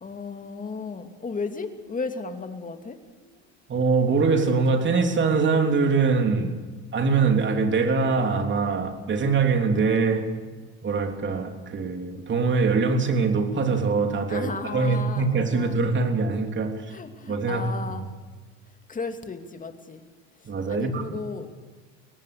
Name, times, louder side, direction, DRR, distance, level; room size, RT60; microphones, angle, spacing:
voice 1, 0.0-3.4 14.3-15.8 16.9-18.1 18.9-20.0 20.7-21.5, left 4 dB, 25° left, 2.6 m, -34 dB
voice 2, 3.7-6.6 6.9-10.3 10.8-16.9 17.3-17.7 18.0-18.1 20.4-21.2, right 4 dB, 35° right, 3.5 m, -23 dB
23.5 x 18.5 x 6.8 m
supercardioid pair, 105°, 35 cm